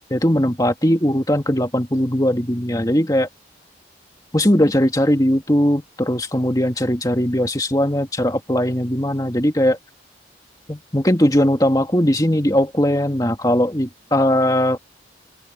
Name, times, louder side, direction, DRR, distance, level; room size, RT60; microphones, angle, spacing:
voice 1, 0.1-3.3 4.3-9.8 10.7-14.8, equal, 20° left, 2.3 m, -19 dB
open air
head